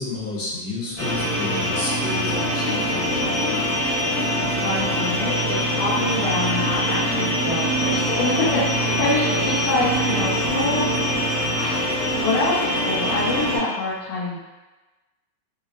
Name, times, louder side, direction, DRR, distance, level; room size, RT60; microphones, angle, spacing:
voice 1, 0.0-3.3, left 2 dB, 60° left, -6 dB, 1.4 m, -31 dB
sound 1, 1.0-13.6, equal, 35° left, 0.9 m, -23 dB
voice 2, 4.3-11.8 12.1-14.4, left 2 dB, 85° left, -11 dB, 1.6 m, -26 dB
5.1 x 2.1 x 2.5 m, 1.1 s
omnidirectional pair, 2.1 m